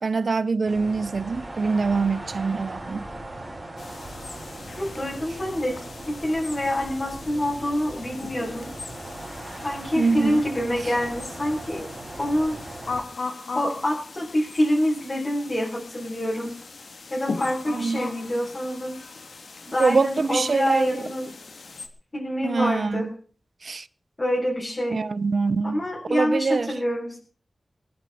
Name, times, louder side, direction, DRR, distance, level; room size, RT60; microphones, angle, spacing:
voice 1, 0.0-3.1 10.0-10.4 17.7-18.0 19.8-21.1 22.4-23.1 23.6-23.9 24.9-25.8 26.1-26.7, right 4 dB, 60° right, 0.8 m, -24 dB
sound 1, 0.7-13.0, right 1 dB, 30° right, 6.5 m, -39 dB
sound 2, 3.8-21.9, left 3 dB, 70° left, 2.9 m, -39 dB
voice 2, 4.7-5.7 6.1-8.7 9.6-11.9 12.2-12.5 13.5-16.5 17.1-19.0 19.6-21.3 22.1-23.1 24.2-25.0 25.6-27.2, left 1 dB, 25° left, 7.1 m, -26 dB
23.5 x 11.0 x 5.0 m
wide cardioid pair, 115°, 0 cm